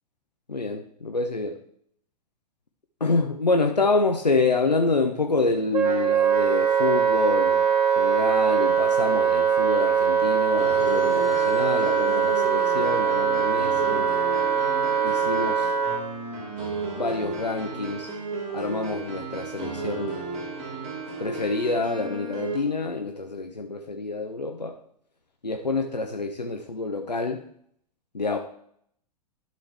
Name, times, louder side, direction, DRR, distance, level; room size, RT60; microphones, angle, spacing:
voice 1, 0.5-1.6 3.0-7.6 8.0-14.1 15.0-15.7 16.9-18.1 18.5-20.2 21.2-24.8 25.4-27.4 28.1-28.4, left 3 dB, 90° left, 5 dB, 0.9 m, -27 dB
Wind instrument woodwind instrument, 5.7-16.0, right 7 dB, 70° right, 1.7 m, -22 dB
sound 1, 10.6-22.6, right 4 dB, 35° right, 2.5 m, -34 dB
12.0 x 6.4 x 3.4 m, 0.65 s
figure-of-eight pair, 105°, 21 cm